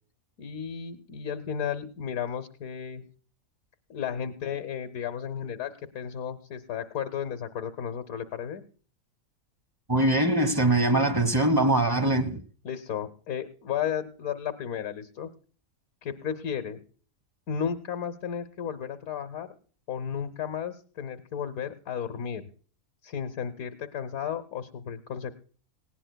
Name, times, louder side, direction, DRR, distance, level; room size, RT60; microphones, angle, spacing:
voice 1, 0.4-3.0 3.9-8.6 12.6-15.3 16.0-16.8 17.5-19.5 19.9-22.5 23.0-25.3, left 8 dB, 85° left, 1.4 m, -33 dB
voice 2, 9.9-12.4, right 1 dB, 20° right, 0.9 m, -22 dB
19.0 x 17.5 x 2.2 m
omnidirectional pair, 1.5 m